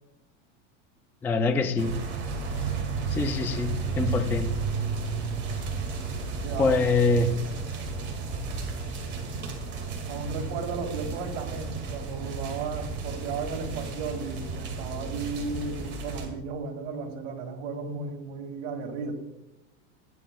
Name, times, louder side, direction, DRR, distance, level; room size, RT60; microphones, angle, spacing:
voice 1, 1.2-1.9 3.1-4.5 6.6-7.3, left 3 dB, 5° left, 7 dB, 0.3 m, -24 dB
sound 1, 1.8-16.3, right 4 dB, 30° right, 2.0 m, -33 dB
voice 2, 6.4-6.8 10.1-19.1, right 4 dB, 80° right, 3 dB, 2.3 m, -35 dB
17.0 x 10.0 x 2.3 m, 0.95 s
supercardioid pair, 145°, 35 cm